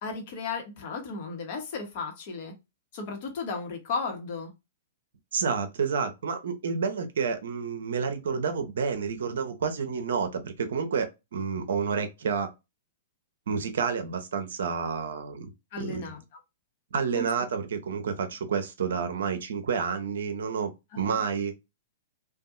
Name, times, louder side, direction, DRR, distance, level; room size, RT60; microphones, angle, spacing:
voice 1, 0.0-2.5 2.9-4.5 15.7-16.2 17.1-17.2 20.9-21.2, left 4 dB, 50° left, 1.0 m, -34 dB
voice 2, 5.3-12.5 13.5-15.5 15.8-16.1 16.9-20.7 21.0-21.5, right 6 dB, 65° right, 0.6 m, -29 dB
2.6 x 2.3 x 2.4 m
figure-of-eight pair, 110°, 0 cm